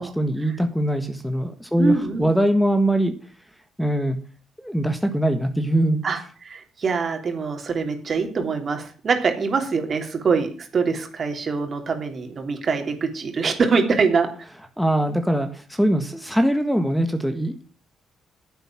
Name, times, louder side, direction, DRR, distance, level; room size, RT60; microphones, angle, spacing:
voice 1, 0.0-3.1 3.8-4.2 4.6-6.0 14.8-17.6, right 1 dB, 5° left, 8 dB, 1.5 m, -22 dB
voice 2, 1.8-2.3 6.0-14.3, right 5 dB, 45° right, 5 dB, 3.1 m, -24 dB
10.5 x 8.2 x 7.4 m, 0.39 s
cardioid pair, 90°, 0 cm